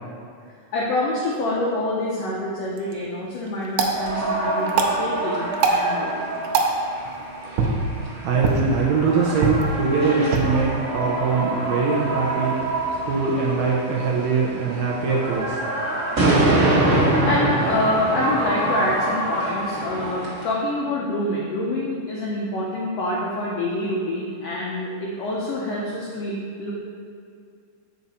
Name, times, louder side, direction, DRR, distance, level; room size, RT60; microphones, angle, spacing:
voice 1, 0.7-6.3 16.9-26.7, left 1 dB, 85° left, -4 dB, 1.4 m, -26 dB
sound 1, 2.6-12.7, right 3 dB, 85° right, 2.4 m, -27 dB
sound 2, 3.8-20.4, right 2 dB, 35° right, 1.4 m, -25 dB
voice 2, 8.2-12.6 13.0-15.6, right 4 dB, 70° right, -3 dB, 1.7 m, -22 dB
7.5 x 5.5 x 4.1 m, 2.3 s
omnidirectional pair, 3.9 m